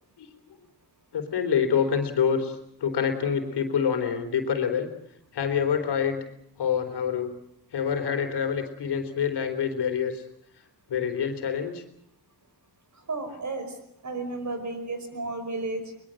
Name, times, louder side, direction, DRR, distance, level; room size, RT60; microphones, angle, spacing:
voice 1, 1.1-4.9 5.3-6.2 6.6-7.4 7.7-10.2 10.9-11.8 13.3-13.4, left 7 dB, 90° left, 6 dB, 3.8 m, -26 dB
voice 2, 13.1-13.8 14.0-15.9, right 3 dB, 45° right, 8 dB, 5.4 m, -33 dB
23.0 x 22.0 x 7.8 m, 0.74 s
wide cardioid pair, 110°, 39 cm